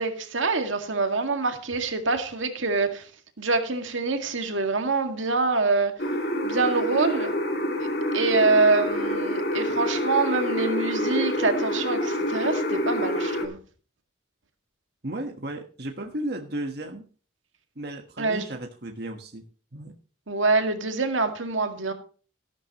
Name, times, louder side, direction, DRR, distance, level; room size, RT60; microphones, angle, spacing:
voice 1, 0.0-3.1 3.4-5.9 6.4-7.3 8.1-13.6 18.2-18.4 20.3-21.9, right 3 dB, 85° right, 2.1 m, -25 dB
sound 1, 6.0-13.5, left 1 dB, 55° left, 2.5 m, -27 dB
voice 2, 15.0-17.0 17.7-19.4 19.7-19.9, right 1 dB, 55° right, 1.4 m, -34 dB
13.5 x 12.0 x 3.0 m
head